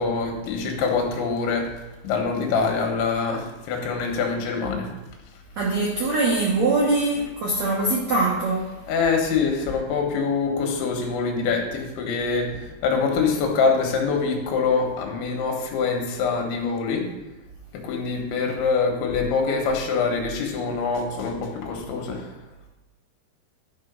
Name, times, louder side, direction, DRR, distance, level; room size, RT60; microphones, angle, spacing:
voice 1, 0.0-1.7 2.0-4.9 8.9-12.5 12.8-17.1 17.8-22.3, left 5 dB, 85° left, 2 dB, 3.7 m, -24 dB
voice 2, 5.6-8.7, right 2 dB, 90° right, -3 dB, 1.5 m, -22 dB
12.0 x 4.7 x 5.3 m, 1.0 s
omnidirectional pair, 5.3 m